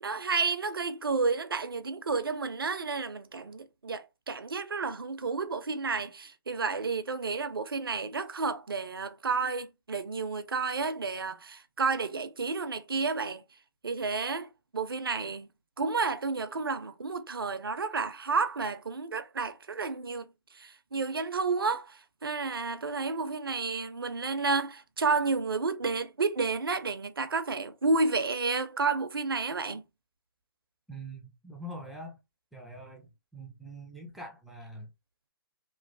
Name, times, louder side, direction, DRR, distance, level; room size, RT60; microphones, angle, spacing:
voice 1, 0.0-13.4 13.8-15.5 15.8-29.8, right 4 dB, 85° right, 0.5 m, -31 dB
voice 2, 30.9-32.2 32.5-34.9, right 1 dB, ahead, 0.4 m, -44 dB
3.0 x 2.1 x 2.5 m
hypercardioid pair, 135°, 12 cm